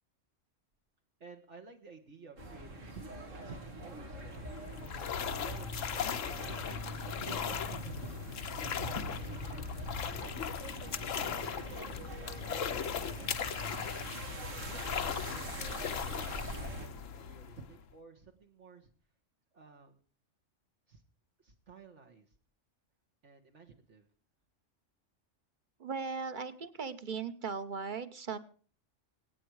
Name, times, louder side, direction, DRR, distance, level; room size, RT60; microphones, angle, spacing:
voice 1, 1.2-4.4 5.3-9.6 10.2-14.0 14.7-18.9 19.5-20.0 20.9-21.0 21.4-22.3 23.2-24.1, right 4 dB, 65° right, 2 dB, 1.8 m, -54 dB
sound 1, 2.4-16.9, right 1 dB, 85° right, 2.7 m, -43 dB
sound 2, 4.2-17.9, left 8 dB, 85° left, 1.3 m, -38 dB
voice 2, 25.8-28.4, right 5 dB, 40° right, 11 dB, 1.1 m, -38 dB
25.0 x 9.2 x 4.8 m, 0.43 s
omnidirectional pair, 1.3 m